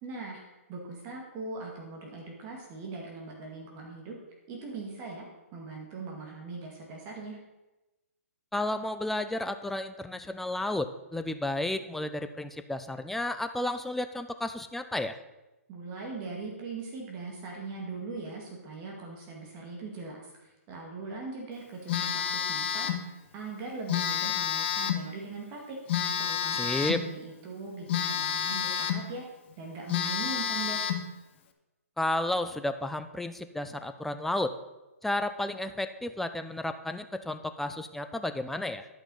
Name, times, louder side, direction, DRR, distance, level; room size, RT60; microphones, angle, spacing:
voice 1, 0.0-4.2 4.5-5.3 5.5-7.4 15.7-25.8 26.2-29.2 29.6-30.8, right 3 dB, 30° right, -1 dB, 2.2 m, -40 dB
voice 2, 8.5-15.2 26.5-27.0 32.0-34.5 35.0-38.9, left 1 dB, 5° left, 9 dB, 0.5 m, -32 dB
Telephone, 21.9-23.1 23.9-25.1 25.9-27.1 27.9-29.1 29.5-29.6 29.9-31.1, left 8 dB, 45° left, 1.0 m, -29 dB
10.5 x 5.9 x 5.6 m, 1.0 s
hypercardioid pair, 135°, 8 cm